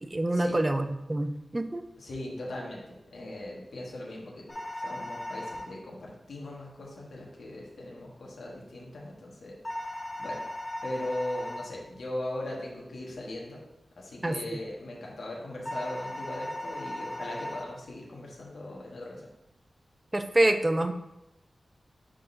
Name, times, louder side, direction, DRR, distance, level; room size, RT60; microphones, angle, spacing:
voice 1, 0.0-1.8 14.2-14.4 20.1-20.9, right 1 dB, 20° right, 8 dB, 0.4 m, -26 dB
voice 2, 2.0-2.8 3.1-9.6 10.2-10.4 10.8-13.6 14.0-19.2, left 1 dB, 85° left, -3 dB, 1.2 m, -39 dB
sound 1, 4.5-5.6 9.6-11.6 15.7-17.6, left 1 dB, 25° left, 1.0 m, -37 dB
10.0 x 3.7 x 2.6 m, 0.91 s
wide cardioid pair, 120°, 0 cm